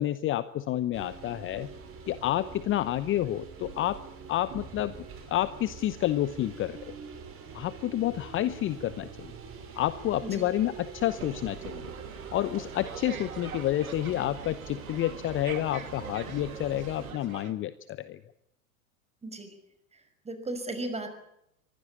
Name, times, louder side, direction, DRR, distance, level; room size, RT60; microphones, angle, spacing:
voice 1, 0.0-1.7 2.1-4.0 4.3-4.9 5.3-6.9 7.5-9.3 9.8-11.8 12.3-18.2, left 13 dB, 30° left, 15 dB, 0.9 m, -29 dB
sound 1, 0.9-17.1, right 6 dB, 30° right, 6.1 m, -44 dB
sound 2, 11.1-17.5, right 7 dB, 80° right, 2.2 m, -43 dB
voice 2, 20.3-21.1, right 2 dB, 15° right, 8 dB, 5.6 m, -35 dB
24.5 x 16.0 x 8.6 m, 0.79 s
figure-of-eight pair, 90°, 42 cm